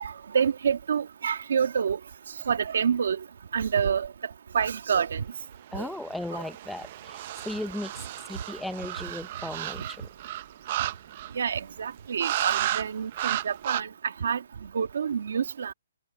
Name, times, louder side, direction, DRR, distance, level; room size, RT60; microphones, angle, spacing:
voice 1, 0.0-2.0 2.5-3.2 3.5-4.1 4.5-5.2 5.8-5.9 11.4-13.9 14.2-14.4 14.7-15.7, right 7 dB, 55° right, 2.1 m, -27 dB
voice 2, 5.7-7.9 8.3-10.0, left 1 dB, ahead, 0.8 m, -36 dB
sound 1, 5.9-11.5 12.2-12.9 13.1-13.8, right 13 dB, 25° right, 0.6 m, -33 dB
hypercardioid pair, 180°, 0 cm